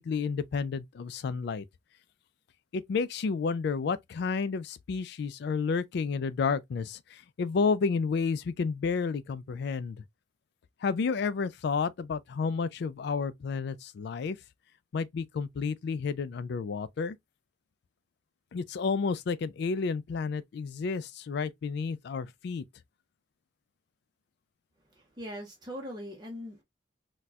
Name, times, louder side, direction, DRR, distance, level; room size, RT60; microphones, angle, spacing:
voice 1, 0.0-1.6 2.7-10.0 10.8-14.4 14.9-17.2 18.5-22.6, left 5 dB, 60° left, 0.3 m, -31 dB
voice 2, 25.0-26.6, equal, 25° right, 0.6 m, -41 dB
4.1 x 2.2 x 2.3 m
head